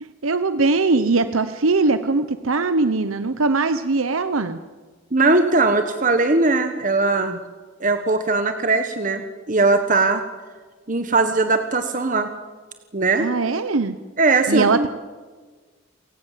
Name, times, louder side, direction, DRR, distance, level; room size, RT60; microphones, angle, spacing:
voice 1, 0.0-4.6 13.2-14.0 14.5-14.9, right 3 dB, 85° right, 11 dB, 0.9 m, -21 dB
voice 2, 5.1-7.4 7.8-10.2 10.9-12.3 12.9-13.3 14.2-14.9, right 3 dB, 40° right, 7 dB, 1.3 m, -19 dB
28.5 x 17.0 x 7.5 m, 1.4 s
head